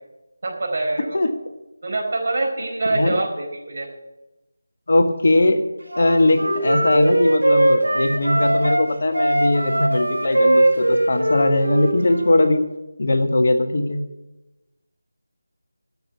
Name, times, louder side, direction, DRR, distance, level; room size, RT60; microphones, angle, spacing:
voice 1, 0.4-1.2 1.8-3.9, right 2 dB, 45° right, -1 dB, 4.5 m, -25 dB
voice 2, 4.9-5.7 5.9-12.6 13.0-14.0, left 2 dB, 55° left, 7 dB, 1.5 m, -19 dB
Wind instrument woodwind instrument, 5.9-8.8 9.1-12.5, right 1 dB, 80° right, 5.0 m, -20 dB
12.5 x 7.3 x 9.3 m, 1.0 s
figure-of-eight pair, 165°, 0 cm